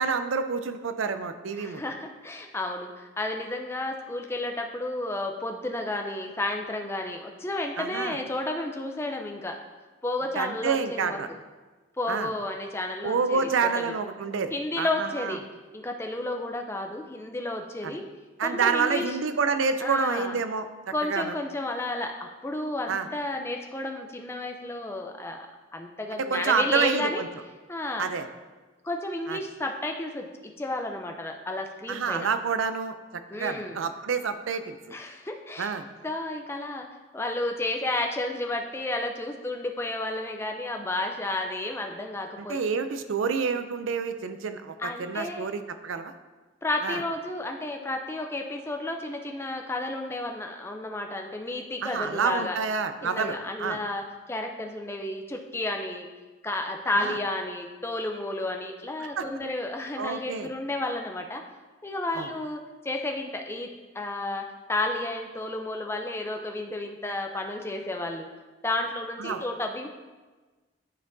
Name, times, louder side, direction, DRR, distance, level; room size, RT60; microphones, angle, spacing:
voice 1, 0.0-1.8 7.8-8.2 10.3-11.3 12.1-12.3 13.0-15.4 17.8-17.9 18.4-20.7 21.0-21.3 22.9-23.1 26.1-27.3 28.0-28.3 29.3-29.4 31.9-32.9 33.3-35.0 35.6-35.9 42.4-46.1 46.8-47.0 51.8-53.8 57.0-57.2 59.2-59.3 60.0-60.5 62.1-62.3 69.2-69.4, right 5 dB, 85° right, 9 dB, 0.5 m, -28 dB
voice 2, 1.6-9.6 10.0-11.2 12.0-13.9 14.5-15.4 15.7-18.0 18.4-19.2 19.8-20.4 20.9-25.5 25.7-27.2 27.7-28.1 28.8-30.3 30.6-32.3 33.3-33.8 34.9-35.7 36.0-36.9 37.1-42.6 44.8-45.5 46.6-52.6 53.0-56.1 56.4-61.4 61.8-62.6 62.8-68.3 68.6-69.9, left 2 dB, 15° left, 3 dB, 0.5 m, -32 dB
12.0 x 4.3 x 2.7 m, 1.3 s
head